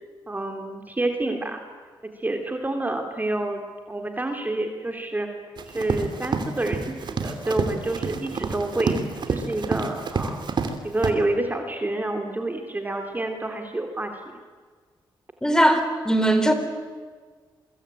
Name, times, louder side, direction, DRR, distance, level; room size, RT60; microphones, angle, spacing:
voice 1, 0.3-1.6 2.2-3.6 3.9-5.3 5.6-6.9 7.2-10.4 10.8-14.1, right 2 dB, 20° right, 4 dB, 3.1 m, -28 dB
Run, 5.6-10.7 11.0-11.1, right 5 dB, 60° right, 3.0 m, -28 dB
voice 2, 15.4-16.5, right 1 dB, 5° left, 8 dB, 3.9 m, -19 dB
28.0 x 24.0 x 9.0 m, 1.5 s
cardioid pair, 90°, 9 cm